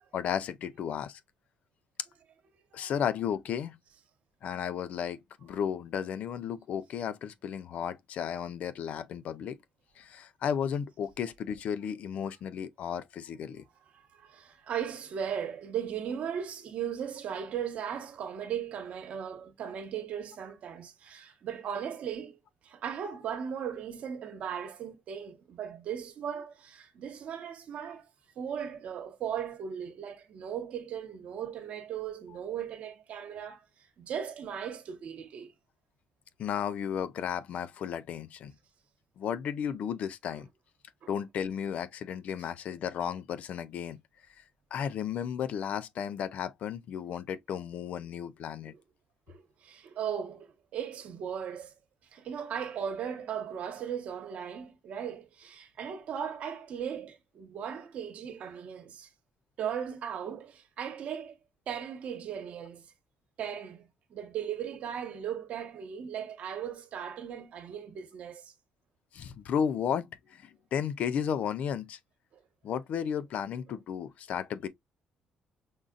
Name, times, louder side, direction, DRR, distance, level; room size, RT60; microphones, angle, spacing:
voice 1, 0.1-1.2 2.7-3.8 4.4-9.6 10.0-13.6 36.4-38.5 39.2-40.5 41.1-44.0 44.4-44.5 44.7-48.7 69.1-72.0 72.6-74.7, left 8 dB, 65° left, 0.5 m, -34 dB
voice 2, 13.9-22.4 22.6-28.0 28.4-33.6 34.0-35.5 41.0-41.1 48.7-48.8 49.3-50.5 50.7-51.7 52.1-59.1 59.6-61.3 61.7-62.8 63.4-68.5, right 8 dB, 65° right, 1.1 m, -37 dB
5.3 x 2.5 x 2.4 m
cardioid pair, 90°, 3 cm